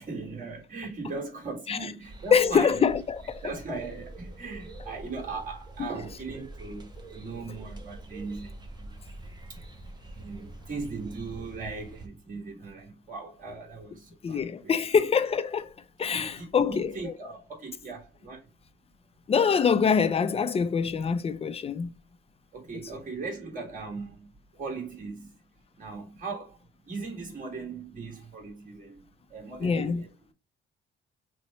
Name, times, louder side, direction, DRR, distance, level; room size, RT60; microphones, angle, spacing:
voice 1, 0.0-2.9 3.4-9.0 10.1-15.0 16.1-18.4 22.5-25.3 25.8-26.6 26.8-29.0 29.3-30.1, right 4 dB, 40° right, 1.5 m, -39 dB
sound 1, 2.0-12.1, right 2 dB, 20° right, 0.7 m, -45 dB
voice 2, 2.3-3.5 5.8-5.9 14.2-15.7 16.0-17.1 19.3-21.9 29.6-30.0, left 6 dB, 30° left, 0.4 m, -25 dB
3.0 x 2.0 x 3.9 m
cardioid pair, 90°, 20 cm